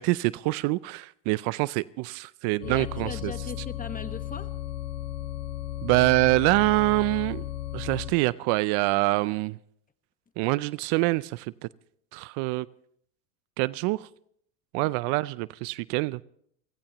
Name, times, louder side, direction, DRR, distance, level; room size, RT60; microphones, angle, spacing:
voice 1, 0.0-3.3 5.8-7.4 7.7-9.5 10.4-11.5 12.1-12.7 13.6-14.1 14.7-16.2, right 22 dB, 60° right, 0.5 m, -25 dB
sound 1, 2.6-8.1, left 12 dB, 70° left, 3.1 m, -35 dB
voice 2, 2.6-4.5 14.8-15.2, left 5 dB, 15° left, 1.3 m, -40 dB
29.5 x 15.5 x 3.0 m
supercardioid pair, 110°, 47 cm